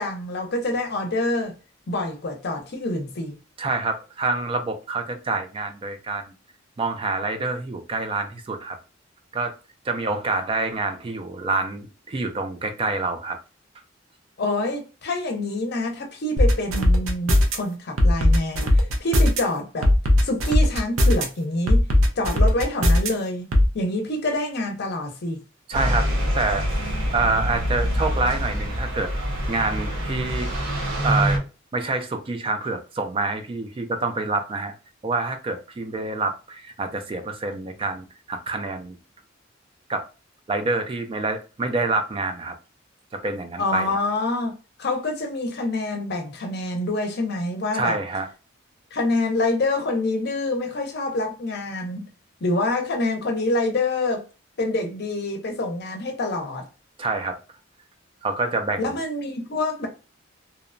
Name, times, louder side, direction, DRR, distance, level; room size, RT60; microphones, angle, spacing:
voice 1, 0.0-1.5 1.9-3.3 14.4-19.9 20.2-21.8 22.2-25.4 43.6-44.5 44.8-48.0 48.9-52.0 52.4-54.3 54.6-56.6 58.8-59.9, left 2 dB, 55° left, 0.6 m, -26 dB
voice 2, 3.6-6.3 6.8-8.8 9.3-9.5 9.8-13.4 25.7-26.1 26.3-26.7 27.1-29.1 29.5-30.5 31.0-31.4 31.7-34.7 35.0-39.0 39.9-40.1 40.5-42.6 43.1-43.9 47.7-48.3 57.0-57.4 58.2-58.9, right 3 dB, 25° right, 0.3 m, -27 dB
sound 1, 16.4-17.6 18.0-19.4 19.8-21.2 21.7-23.1 23.5-23.7, left 1 dB, 90° right, 0.6 m, -17 dB
sound 2, 25.7-31.4, equal, 70° right, 1.0 m, -25 dB
2.8 x 2.1 x 2.5 m
head